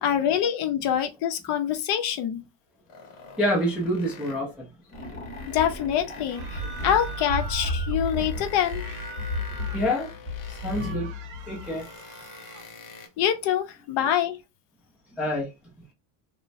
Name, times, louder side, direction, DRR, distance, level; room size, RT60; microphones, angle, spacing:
voice 1, 0.0-2.4 5.5-8.8 13.2-14.4, left 9 dB, 60° left, 0.6 m, -25 dB
sound 1, 2.9-4.5 4.9-7.6 8.0-11.0 11.4-13.1, left 5 dB, 85° left, 0.9 m, -46 dB
voice 2, 3.4-4.7 9.7-10.1 10.5-11.1 11.5-11.9 15.2-15.5, equal, 5° right, 0.3 m, -27 dB
sound 2, 4.9-11.8, left 1 dB, 20° left, 0.8 m, -33 dB
sound 3, 6.2-8.0 8.6-10.0 10.4-12.7, right 3 dB, 70° right, 0.8 m, -43 dB
3.0 x 2.0 x 2.5 m
cardioid pair, 170°, 48 cm